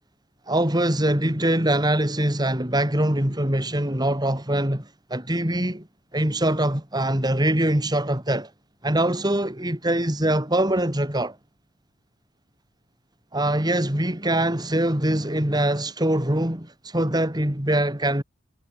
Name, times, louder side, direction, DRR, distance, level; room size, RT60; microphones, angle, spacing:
voice 1, 0.5-5.9 6.1-8.5 8.8-11.4 13.3-18.2, right 1 dB, 20° right, 3.0 m, -23 dB
head